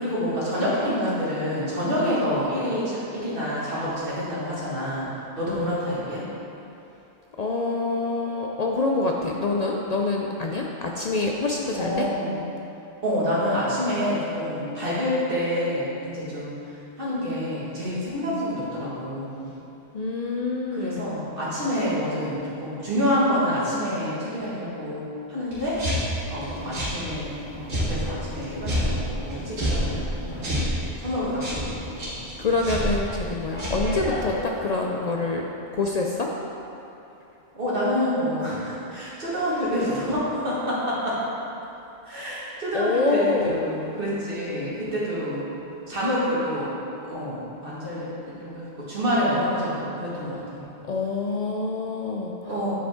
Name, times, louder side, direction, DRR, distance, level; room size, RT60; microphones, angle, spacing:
voice 1, 0.0-5.1 5.4-6.2 11.7-12.4 13.0-16.5 17.0-19.5 20.7-25.0 25.3-25.8 26.3-30.7 31.0-31.7 32.0-32.1 37.5-41.2 42.1-45.5 45.9-46.7 47.1-50.4 52.5-52.7, equal, 50° right, -9 dB, 2.0 m, -27 dB
voice 2, 7.4-12.1 19.9-21.0 32.4-35.4 35.7-36.3 42.7-43.6 50.9-52.4, left 3 dB, 60° left, 0 dB, 0.4 m, -26 dB
sound 1, 25.5-34.4, equal, 75° right, 2.0 m, -29 dB
9.1 x 5.0 x 3.6 m, 2.9 s
omnidirectional pair, 1.2 m